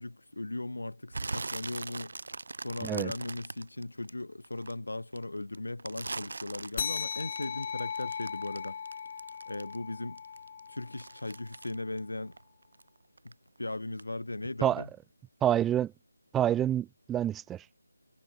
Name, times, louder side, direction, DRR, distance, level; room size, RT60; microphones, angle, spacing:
voice 1, 0.0-2.1 2.6-8.8 9.5-10.2 10.7-12.3 13.2-13.3 13.6-14.9, left 2 dB, 90° left, 1.7 m, -38 dB
sound 1, 1.1-4.7 5.1-9.9 10.2-12.9 13.2-13.6 14.0-14.1, right 3 dB, 60° right, 4.8 m, -41 dB
sound 2, 6.8-11.7, left 7 dB, 30° left, 3.8 m, -38 dB
voice 2, 15.4-15.9 16.3-17.6, right 11 dB, 5° right, 0.4 m, -27 dB
figure-of-eight pair, 170°, 0 cm